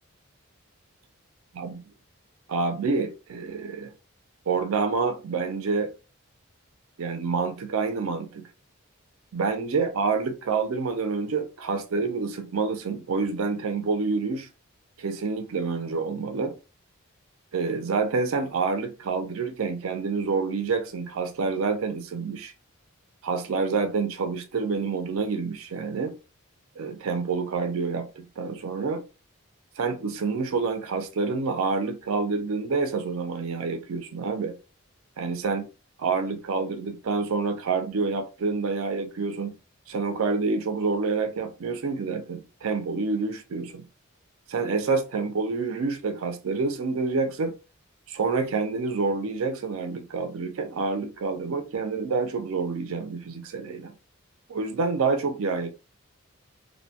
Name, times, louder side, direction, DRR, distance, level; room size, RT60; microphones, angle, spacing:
voice 1, 2.5-3.9 4.5-5.9 7.0-8.5 9.3-14.5 15.0-16.5 17.5-22.5 23.2-26.1 26.8-29.0 29.8-34.6 35.2-35.6 36.0-39.5 39.9-43.8 44.5-47.5 48.1-53.9 54.5-55.7, right 4 dB, 70° right, 0.4 m, -28 dB
2.6 x 2.2 x 2.7 m
head